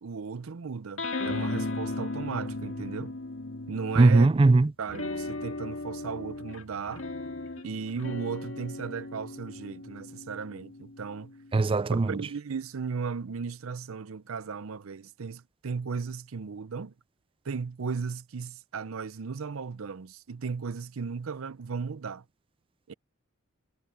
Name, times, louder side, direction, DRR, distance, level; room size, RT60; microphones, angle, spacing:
voice 1, 0.0-3.1 3.7-4.3 4.8-7.1 7.6-11.3 11.9-16.9 17.5-22.2 22.9-23.0, right 5 dB, 75° right, 0.6 m, -36 dB
sound 1, 1.0-4.3 4.9-11.7, left 2 dB, 65° left, 2.3 m, -37 dB
voice 2, 4.0-4.7 11.5-12.2, right 3 dB, 25° right, 0.4 m, -20 dB
head